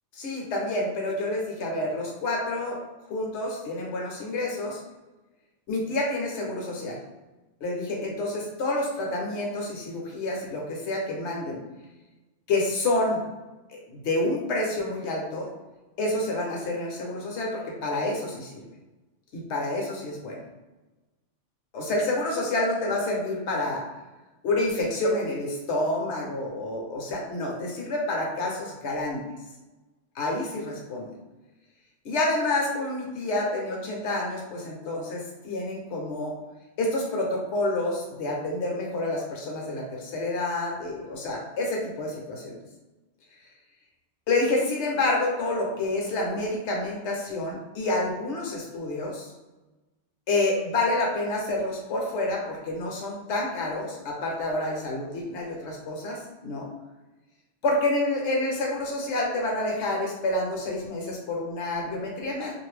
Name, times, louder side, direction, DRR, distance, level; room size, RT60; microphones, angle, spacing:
voice 1, 0.1-2.8 3.1-4.8 5.7-7.0 7.6-11.6 12.5-13.2 13.7-15.5 16.0-18.6 19.3-20.4 21.7-23.8 24.4-29.2 30.1-31.1 32.0-36.3 36.8-42.6 44.3-49.3 50.3-56.7 57.6-62.5, left 2 dB, 70° left, -1 dB, 1.1 m, -28 dB
2.6 x 2.5 x 3.2 m, 1.1 s
omnidirectional pair, 1.2 m